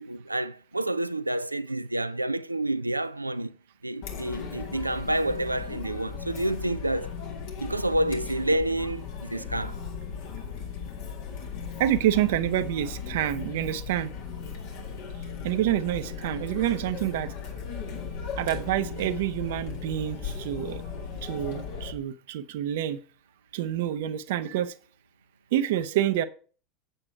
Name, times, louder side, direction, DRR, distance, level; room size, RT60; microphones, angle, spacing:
voice 1, 0.0-3.6 3.8-7.2 7.6-9.8, right 1 dB, 90° right, 0.3 m, -29 dB
Chatter, 4.0-21.9, left 6 dB, 55° left, 1.9 m, -37 dB
voice 2, 11.8-14.1 15.4-17.3 18.4-23.0 23.5-24.7 25.5-26.3, right 12 dB, 60° right, 0.7 m, -27 dB
7.8 x 7.7 x 4.5 m
figure-of-eight pair, 80°, 0 cm